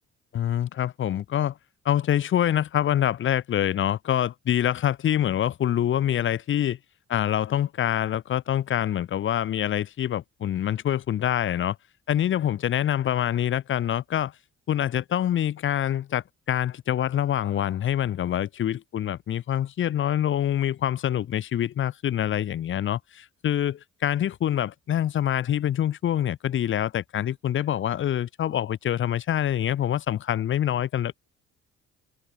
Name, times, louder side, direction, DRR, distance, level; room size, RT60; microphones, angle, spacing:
voice 1, 0.3-1.6 1.8-6.8 7.1-11.8 12.1-14.3 14.7-31.3, left 10 dB, 40° left, 0.5 m, -25 dB
cardioid pair, 90°, 30 cm